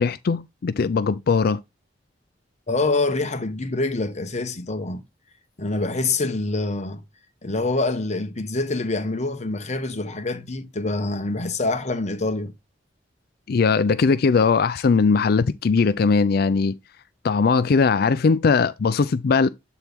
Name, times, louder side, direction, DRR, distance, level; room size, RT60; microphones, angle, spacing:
voice 1, 0.0-1.6 13.5-16.7 17.2-19.5, left 4 dB, 60° left, 0.4 m, -19 dB
voice 2, 2.7-5.0 5.6-7.0 7.4-12.5, left 2 dB, 40° left, 1.1 m, -25 dB
8.0 x 4.5 x 3.5 m
head